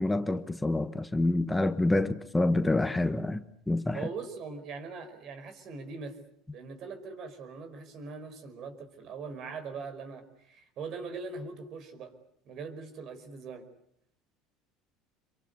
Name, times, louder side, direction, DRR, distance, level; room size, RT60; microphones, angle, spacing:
voice 1, 0.0-4.0, left 2 dB, 10° left, 1.2 m, -27 dB
voice 2, 3.9-6.2 6.5-12.1 12.4-13.7, right 4 dB, 55° right, 5.0 m, -41 dB
26.5 x 23.5 x 8.3 m
supercardioid pair, 95°, 0 cm